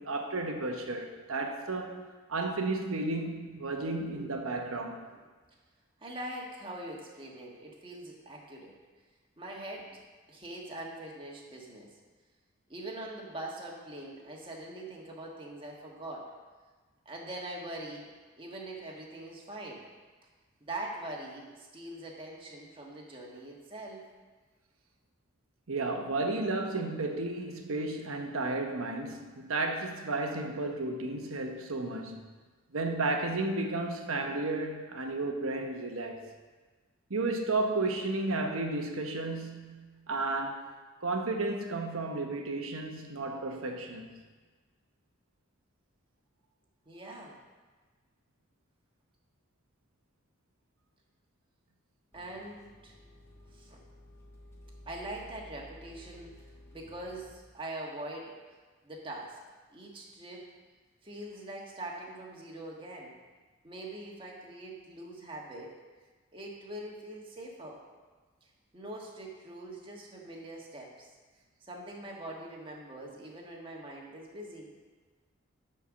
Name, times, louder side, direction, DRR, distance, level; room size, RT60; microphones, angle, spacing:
voice 1, 0.0-5.0 25.7-32.2 32.7-36.3 37.1-40.6 41.0-44.1, right 2 dB, 85° right, 3 dB, 1.1 m, -33 dB
voice 2, 6.0-8.8 9.4-10.0 10.3-11.9 12.7-16.3 17.0-18.1 18.4-19.8 20.6-24.0 46.8-47.4 52.1-53.0 53.5-53.8 54.8-56.3 56.7-58.3 58.8-59.4 59.7-60.4 61.0-63.1 63.6-65.7 66.3-67.8 68.4-68.5 68.7-71.1 71.6-74.7, right 1 dB, 25° right, -2 dB, 1.5 m, -43 dB
sound 1, 52.1-57.3, equal, 10° left, 1.3 m, -53 dB
10.0 x 4.6 x 6.2 m, 1.4 s
head